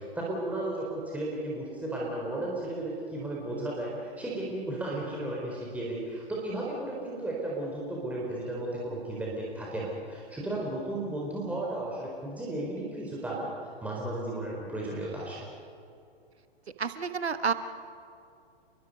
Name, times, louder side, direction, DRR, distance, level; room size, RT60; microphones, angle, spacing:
voice 1, 0.0-13.5 13.8-15.4, right 1 dB, 5° right, -4 dB, 4.3 m, -34 dB
voice 2, 16.8-17.5, right 6 dB, 85° right, 10 dB, 1.3 m, -29 dB
29.0 x 22.0 x 5.4 m, 2.5 s
figure-of-eight pair, 115°, 31 cm